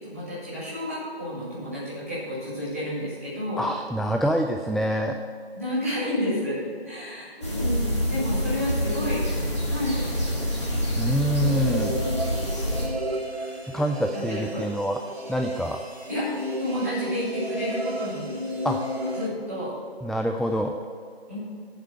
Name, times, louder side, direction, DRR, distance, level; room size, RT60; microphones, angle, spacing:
voice 1, 0.0-3.6 5.5-6.6 6.8-9.2 9.7-10.4 14.3-14.6 16.1-18.3 19.1-19.7 21.3-21.4, equal, 15° right, -11 dB, 2.6 m, -30 dB
voice 2, 3.6-5.2 11.0-12.0 13.7-15.0 15.3-15.8 18.6-18.8 20.0-20.8, equal, ahead, 4 dB, 0.3 m, -26 dB
sound 1, 7.4-12.9, equal, 25° left, 1.8 m, -26 dB
sound 2, 11.4-19.3, equal, 75° right, 2.4 m, -33 dB
8.8 x 7.3 x 8.1 m, 2.2 s
figure-of-eight pair, 170°, 31 cm